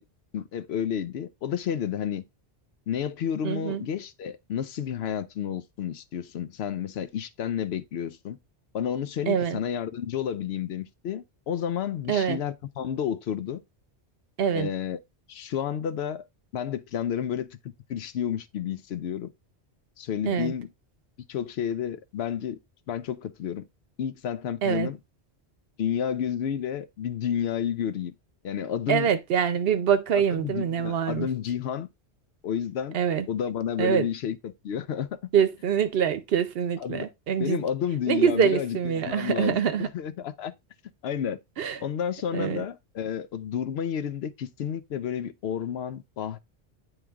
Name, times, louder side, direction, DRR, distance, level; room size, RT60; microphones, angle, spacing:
voice 1, 0.3-2.2 2.9-8.4 8.7-13.6 14.5-15.0 15.3-16.2 16.5-17.6 17.9-19.3 20.0-20.7 21.3-22.6 22.9-23.6 24.0-25.0 25.8-28.1 28.4-29.1 30.1-31.9 32.4-33.0 33.3-35.1 36.8-37.0 37.4-40.5 41.0-41.4 41.8-46.4, left 8 dB, 75° left, 0.8 m, -31 dB
voice 2, 3.4-3.8 9.3-9.6 12.1-12.4 14.4-14.7 20.3-20.5 24.6-24.9 28.9-31.3 32.9-33.3 33.8-34.1 35.3-37.6 38.1-39.9 41.6-41.8 42.3-42.7, right 8 dB, 65° right, 0.8 m, -25 dB
8.8 x 3.2 x 3.5 m
omnidirectional pair, 1.1 m